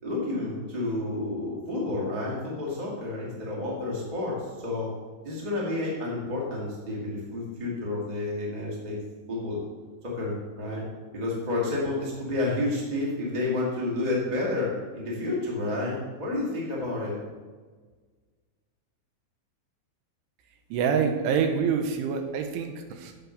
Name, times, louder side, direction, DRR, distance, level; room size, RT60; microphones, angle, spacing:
voice 1, 0.0-4.9 5.2-9.0 9.3-9.6 10.0-10.8 11.1-17.2, left 2 dB, 20° right, -4 dB, 1.0 m, -30 dB
voice 2, 20.7-23.1, right 6 dB, 85° right, 5 dB, 3.4 m, -26 dB
8.0 x 7.6 x 6.5 m, 1.4 s
omnidirectional pair, 5.4 m